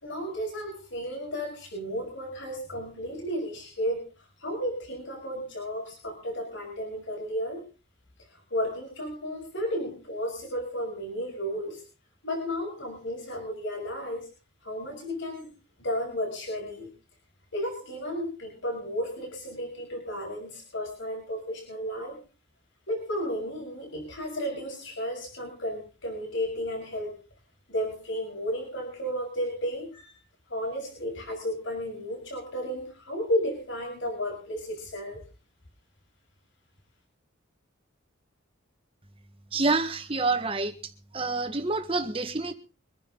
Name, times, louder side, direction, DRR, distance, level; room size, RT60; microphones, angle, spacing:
voice 1, 0.0-4.0 4.4-7.6 8.5-11.8 12.2-14.2 14.6-15.5 15.8-16.9 17.5-22.2 22.9-27.1 27.7-30.2 30.5-35.2, equal, 65° left, 6.2 m, -33 dB
voice 2, 39.5-40.7 41.1-42.5, right 3 dB, 25° right, 1.7 m, -27 dB
24.5 x 10.5 x 4.0 m
head